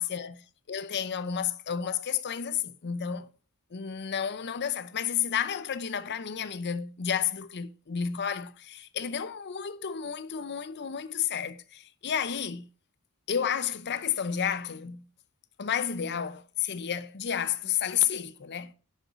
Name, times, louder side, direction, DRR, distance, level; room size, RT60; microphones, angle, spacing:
voice 1, 0.0-3.3 3.7-12.7 13.3-15.1 15.6-18.7, left 8 dB, 50° left, 0.6 m, -31 dB
11.0 x 5.3 x 5.1 m
head